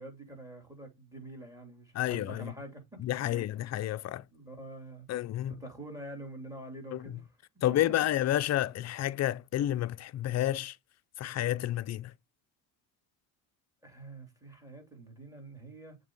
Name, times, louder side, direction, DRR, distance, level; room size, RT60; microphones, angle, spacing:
voice 1, 0.0-3.5 4.3-5.1 5.5-7.4 13.8-16.0, right 1 dB, 5° right, 2.9 m, -46 dB
voice 2, 1.9-2.5 3.0-4.2 5.1-5.5 6.9-7.0 7.6-10.8 11.2-12.1, left 13 dB, 35° left, 0.5 m, -30 dB
7.3 x 2.9 x 4.6 m
supercardioid pair, 85°, 46 cm